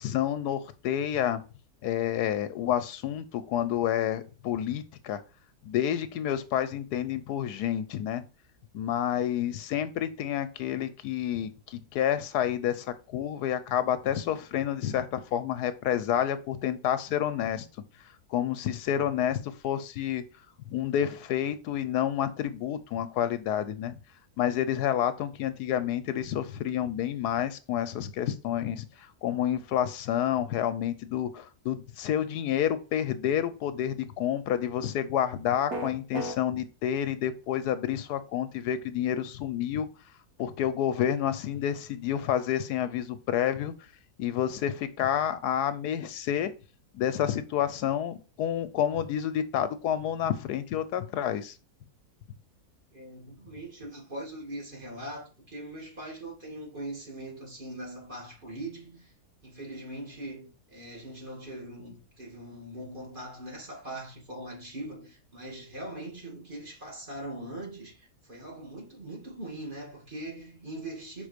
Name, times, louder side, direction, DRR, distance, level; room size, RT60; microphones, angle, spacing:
voice 1, 0.0-1.4 1.8-5.2 5.6-8.2 8.7-17.7 18.3-20.2 20.6-24.0 24.4-39.9 40.4-43.7 44.2-46.5 46.9-51.5, left 10 dB, 85° left, 1.2 m, -29 dB
sound 1, 35.7-36.4, right 1 dB, 85° right, 2.3 m, -32 dB
voice 2, 52.9-59.1 59.4-71.3, right 1 dB, 30° right, 2.5 m, -41 dB
5.3 x 3.9 x 5.1 m
omnidirectional pair, 1.7 m